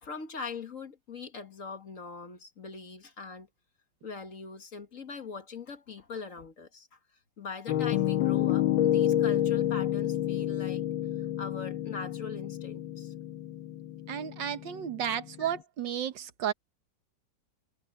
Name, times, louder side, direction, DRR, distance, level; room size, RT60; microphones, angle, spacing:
voice 1, 0.0-3.5 4.0-7.0 7.4-10.8 11.4-13.1 15.4-15.5, left 5 dB, 45° left, 1.8 m, -41 dB
Piano, 7.7-15.5, left 12 dB, 90° left, 1.7 m, -29 dB
voice 2, 14.1-16.5, right 9 dB, 70° right, 1.8 m, -33 dB
omnidirectional pair, 2.1 m